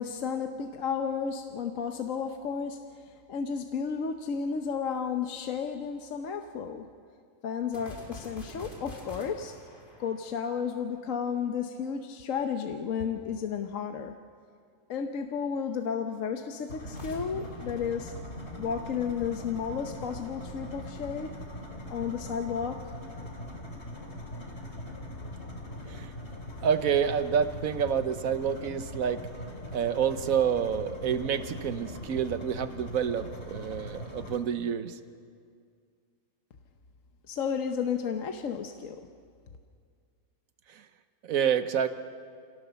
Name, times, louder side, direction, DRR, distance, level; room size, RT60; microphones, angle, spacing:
voice 1, 0.0-6.9 7.4-9.6 10.0-14.2 14.9-18.1 18.6-21.3 21.9-22.8 37.3-39.1, left 6 dB, 70° left, 6 dB, 1.3 m, -32 dB
sound 1, 7.7-11.2 16.8-18.9, left 1 dB, 35° left, 3.8 m, -47 dB
sound 2, 16.7-34.4, left 1 dB, 50° left, 2.6 m, -41 dB
voice 2, 26.6-29.2 29.7-35.0 40.7-40.8 41.2-41.9, right 8 dB, 75° right, 11 dB, 1.4 m, -28 dB
26.5 x 18.0 x 6.9 m, 2.2 s
omnidirectional pair, 1.5 m